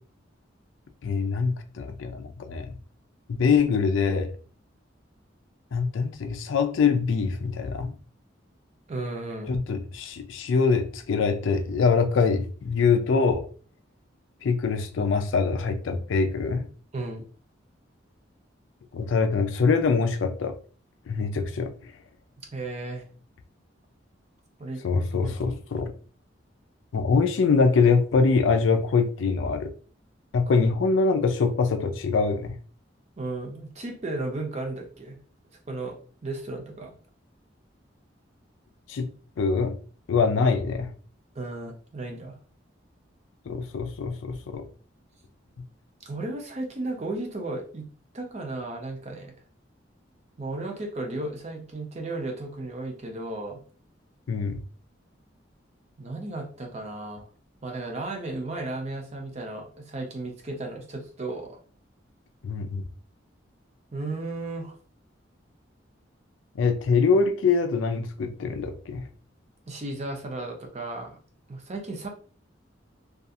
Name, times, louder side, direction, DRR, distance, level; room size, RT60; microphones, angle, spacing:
voice 1, 1.0-2.7 3.3-4.3 5.7-7.9 9.5-13.5 14.4-16.7 18.9-20.5 21.1-21.9 24.8-25.9 26.9-29.7 30.3-32.6 38.9-39.1 39.4-39.8 40.1-40.9 43.5-44.6 54.3-54.6 62.4-62.8 66.6-69.1, left 5 dB, 85° left, 0.4 m, -24 dB
voice 2, 8.9-9.5 16.9-17.3 22.5-23.0 24.6-24.8 25.2-25.3 33.2-35.2 35.7-36.0 36.2-37.0 41.4-42.3 46.0-47.9 48.1-49.3 50.4-53.6 56.0-57.2 57.6-61.6 63.9-64.7 69.7-71.2 71.5-72.1, right 2 dB, 35° right, 0.5 m, -34 dB
2.4 x 2.3 x 2.7 m
head